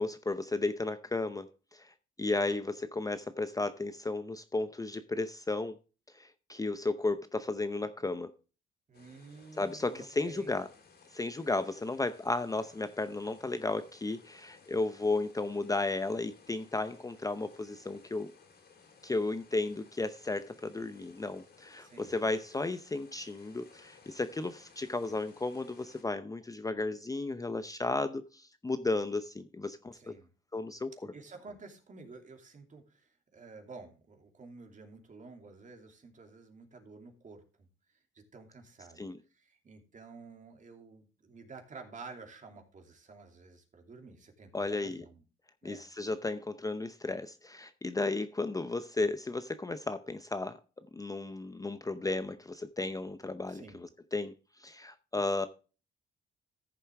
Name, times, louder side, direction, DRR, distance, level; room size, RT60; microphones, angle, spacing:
voice 1, 0.0-5.8 6.1-8.3 9.6-10.7 11.1-18.3 19.0-30.1 30.5-30.9 39.0-39.2 44.5-45.0 45.6-50.6 50.9-54.3 54.6-55.5, left 2 dB, 15° left, 0.7 m, -34 dB
sound 1, 8.9-26.0, left 5 dB, 55° left, 3.9 m, -60 dB
voice 2, 8.9-10.6 21.8-22.1 29.9-30.3 31.1-45.2 45.6-45.9 53.5-53.8, right 4 dB, 40° right, 2.7 m, -51 dB
14.0 x 6.9 x 3.5 m
cardioid pair, 90°, 20 cm